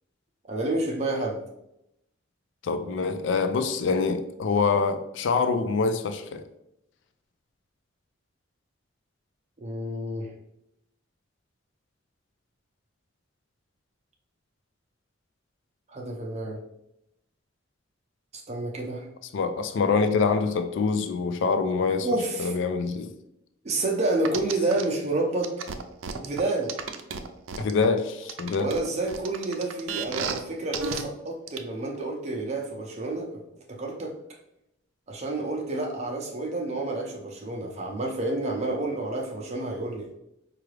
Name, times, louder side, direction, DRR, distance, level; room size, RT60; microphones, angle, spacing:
voice 1, 0.5-1.4 9.6-10.3 15.9-16.6 18.3-19.0 22.0-22.5 23.6-25.5 26.1-26.8 28.6-33.4 33.8-34.2 35.1-40.1, right 2 dB, 35° right, 0.5 m, -29 dB
voice 2, 2.6-6.4 19.3-22.1 22.4-23.1 27.6-28.7, left 4 dB, 65° left, 0.4 m, -25 dB
sound 1, 24.2-24.8 25.4-27.9 28.3-30.4 30.7-31.0 31.5-31.6, right 6 dB, 90° right, 0.4 m, -33 dB
4.8 x 2.4 x 3.1 m
head